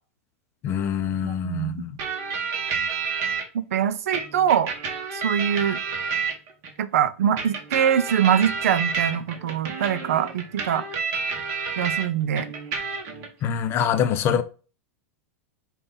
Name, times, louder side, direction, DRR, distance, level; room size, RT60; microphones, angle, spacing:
voice 1, 0.6-1.9 13.4-14.4, left 8 dB, 30° left, 0.4 m, -24 dB
voice 2, 1.2-1.8 3.5-4.7 5.1-5.8 6.8-10.8 11.8-12.5, right 9 dB, 90° right, 0.4 m, -23 dB
sound 1, 2.0-3.4 4.1-6.7 7.4-12.0 12.3-13.3, right 5 dB, 40° right, 1.1 m, -29 dB
5.3 x 2.3 x 3.8 m
supercardioid pair, 140°, 8 cm